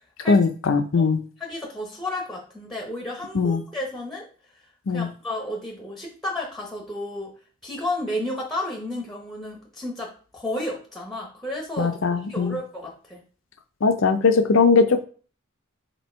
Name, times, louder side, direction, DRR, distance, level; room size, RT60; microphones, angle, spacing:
voice 1, 0.3-1.2 3.3-3.6 4.9-5.1 11.8-12.6 13.8-15.1, left 4 dB, 65° left, 8 dB, 0.5 m, -20 dB
voice 2, 1.4-4.3 4.9-7.3 7.6-11.9 12.3-13.2, left 1 dB, ahead, -1 dB, 0.8 m, -32 dB
4.4 x 2.7 x 4.3 m, 0.40 s
head